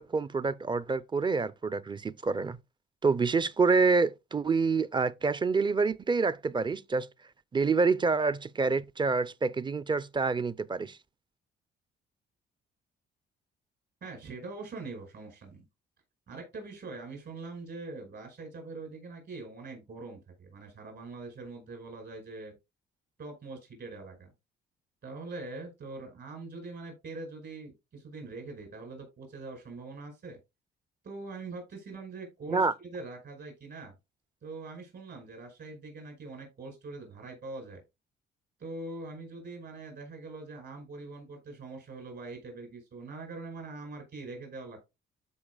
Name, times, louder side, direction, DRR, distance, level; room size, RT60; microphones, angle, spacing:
voice 1, 0.0-2.6 3.0-7.1 7.5-11.0 32.5-32.7, right 4 dB, 25° right, 0.5 m, -27 dB
voice 2, 14.0-15.6 16.3-22.5 23.2-24.3 25.0-30.4 31.0-33.9 34.4-37.8 38.6-44.8, right 3 dB, 60° right, 5.2 m, -43 dB
13.5 x 4.8 x 2.3 m
cardioid pair, 90°, 20 cm